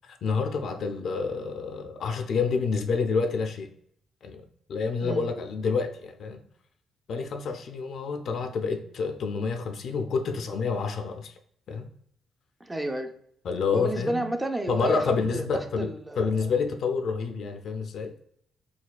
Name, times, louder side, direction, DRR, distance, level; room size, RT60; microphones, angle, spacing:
voice 1, 0.0-3.7 4.2-4.4 4.7-6.4 7.1-11.3 11.7-11.9 13.4-14.2 14.7-15.9 16.2-18.1, left 5 dB, 65° left, 0.4 m, -28 dB
voice 2, 12.6-13.1 13.7-16.5, right 1 dB, 15° right, 0.4 m, -31 dB
4.0 x 2.2 x 2.3 m
cardioid pair, 90°, 0 cm